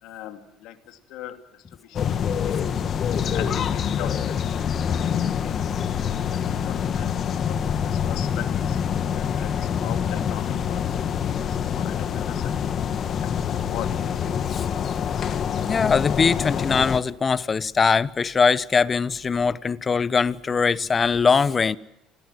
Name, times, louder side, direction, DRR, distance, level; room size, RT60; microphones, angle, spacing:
voice 1, 0.0-1.4 1.8-2.6 3.1-4.6 4.9-5.2 5.4-5.6 6.3-8.8 9.1-12.7 13.2-14.0, left 12 dB, 70° left, 2.8 m, -40 dB
sound 1, 1.9-17.0, left 8 dB, 50° left, 1.6 m, -26 dB
voice 2, 15.6-21.8, left 5 dB, 30° left, 1.0 m, -21 dB
27.5 x 19.0 x 7.7 m
hypercardioid pair, 75°, 0 cm